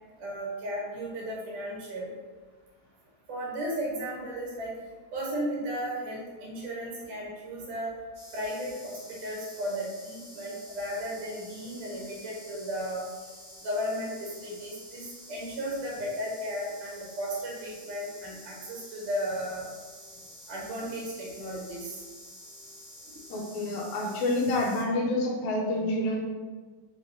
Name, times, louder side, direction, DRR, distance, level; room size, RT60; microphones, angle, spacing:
voice 1, 0.2-2.1 3.3-4.7 5.1-7.9 8.3-13.1 13.6-19.7 20.5-22.0 23.1-23.2, equal, 90° right, -4 dB, 2.8 m, -35 dB
sound 1, 8.1-24.8, left 1 dB, 50° right, 1.2 m, -49 dB
voice 2, 23.3-26.2, left 1 dB, 80° left, 0 dB, 1.9 m, -28 dB
5.1 x 3.0 x 3.1 m, 1.4 s
omnidirectional pair, 3.6 m